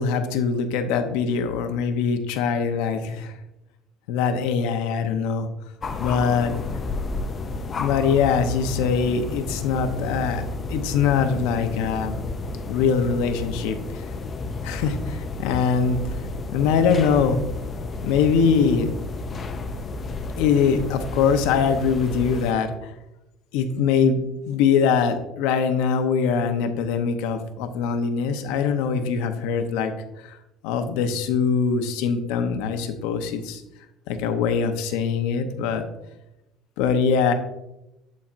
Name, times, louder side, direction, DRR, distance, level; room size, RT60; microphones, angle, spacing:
voice 1, 0.0-3.3 4.1-5.5 6.0-6.5 7.8-10.4 10.7-12.2 12.7-14.1 14.6-16.0 16.5-17.4 18.0-18.9 20.4-22.9 23.5-24.2 24.5-29.9 30.2-30.4 30.6-33.6 34.1-35.9 36.8-37.3, left 6 dB, 85° left, 7 dB, 0.8 m, -22 dB
sound 1, 5.8-22.5, left 3 dB, 25° left, 0.5 m, -32 dB
11.5 x 4.3 x 2.5 m, 0.92 s
cardioid pair, 150°, 0 cm